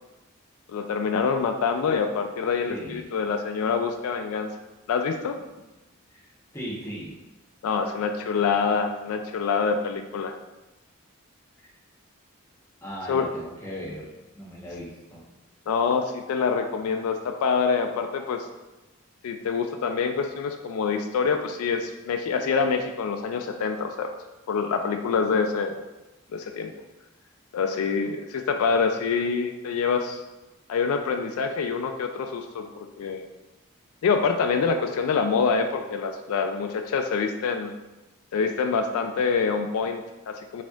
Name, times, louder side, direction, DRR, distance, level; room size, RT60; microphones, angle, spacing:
voice 1, 0.7-4.5 4.9-5.4 7.6-10.4 13.1-13.3 15.7-18.5 19.2-24.1 24.5-25.8 26.3-26.7 27.5-30.2 30.7-33.3 34.0-37.7 38.3-40.6, left 5 dB, 90° left, 5 dB, 0.3 m, -26 dB
voice 2, 2.7-3.1 6.1-7.1 12.8-15.2, equal, 15° left, -6 dB, 0.9 m, -38 dB
4.2 x 3.5 x 2.3 m, 1.0 s
head